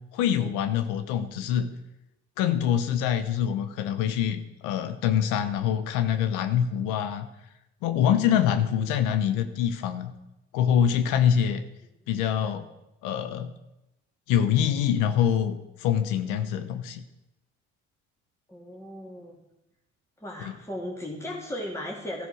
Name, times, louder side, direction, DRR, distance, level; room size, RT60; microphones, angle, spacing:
voice 1, 0.1-1.7 2.4-7.3 7.8-10.1 10.5-11.6 12.1-12.7 13.0-13.5 14.3-17.0 20.4-20.5, left 9 dB, 85° left, 10 dB, 1.0 m, -25 dB
voice 2, 18.5-19.3 20.2-22.3, left 1 dB, 10° left, -2 dB, 3.3 m, -36 dB
13.5 x 11.0 x 6.4 m, 0.91 s
supercardioid pair, 80°, 30 cm